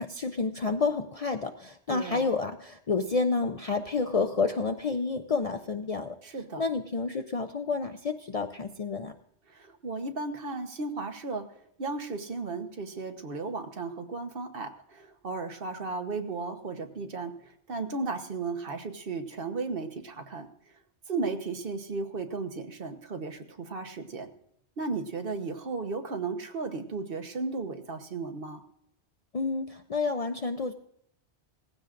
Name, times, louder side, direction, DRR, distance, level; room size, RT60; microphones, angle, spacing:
voice 1, 0.0-6.2 6.6-9.1 29.3-30.7, left 4 dB, 45° left, 7 dB, 0.5 m, -29 dB
voice 2, 1.9-2.3 6.2-6.6 9.5-11.5 11.8-20.5 21.1-24.3 24.8-28.6, right 3 dB, 55° right, 6 dB, 1.2 m, -35 dB
18.0 x 15.5 x 2.5 m, 0.73 s
omnidirectional pair, 1.1 m